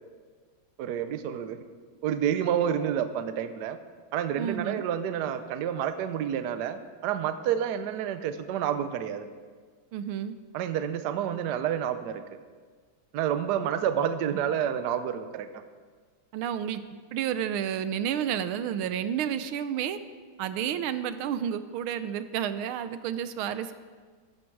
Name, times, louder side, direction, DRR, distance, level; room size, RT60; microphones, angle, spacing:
voice 1, 0.8-1.6 2.0-3.8 4.1-9.3 10.5-12.2 13.1-15.5, right 9 dB, 65° right, 10 dB, 1.2 m, -29 dB
voice 2, 4.4-4.8 9.9-10.3 16.3-16.8 17.1-20.0 20.4-23.7, right 9 dB, 90° right, 12 dB, 1.6 m, -30 dB
15.0 x 12.0 x 4.7 m, 1.5 s
omnidirectional pair, 2.3 m